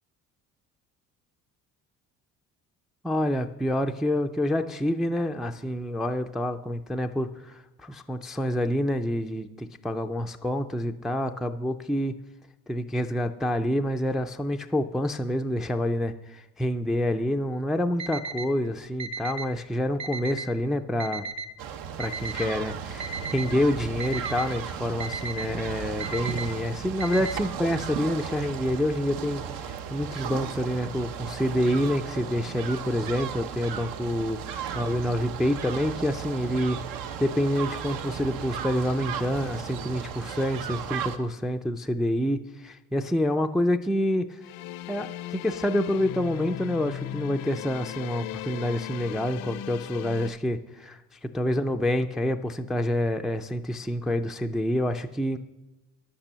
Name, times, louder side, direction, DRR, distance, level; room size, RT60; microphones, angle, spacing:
voice 1, 3.0-12.1 12.7-21.3 22.0-36.8 37.2-44.4 44.9-51.0 51.3-55.4, equal, ahead, 6 dB, 0.3 m, -27 dB
Alarm, 18.0-18.5 19.0-19.5 20.0-20.5 21.0-21.5 22.0-22.5 23.0-23.5 24.0-24.5 25.0-25.5 26.0-26.5 27.0-27.6, right 4 dB, 55° right, 0.9 m, -34 dB
sound 1, 21.6-41.2, right 8 dB, 80° right, 1.0 m, -35 dB
sound 2, 44.4-50.3, left 12 dB, 75° left, 0.6 m, -37 dB
10.0 x 8.8 x 6.7 m, 1.1 s
cardioid pair, 140°, 33 cm